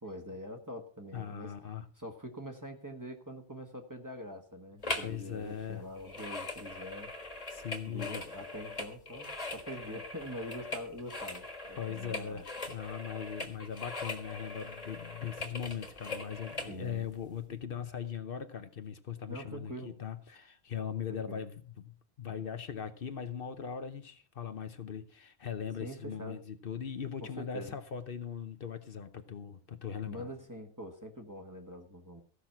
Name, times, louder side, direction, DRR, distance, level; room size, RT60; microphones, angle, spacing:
voice 1, 0.0-1.5 1.9-7.1 7.9-12.5 16.7-17.1 19.3-19.9 21.1-21.4 25.8-26.4 27.2-27.8 30.1-32.2, equal, 20° right, 1.5 m, -44 dB
voice 2, 1.1-1.8 5.0-5.8 7.5-8.3 11.8-30.3, left 8 dB, 65° left, 1.0 m, -40 dB
sound 1, 4.8-5.2 5.4-16.7 17.3-17.4, left 2 dB, 40° left, 1.7 m, -41 dB
15.0 x 6.0 x 5.8 m
omnidirectional pair, 1.0 m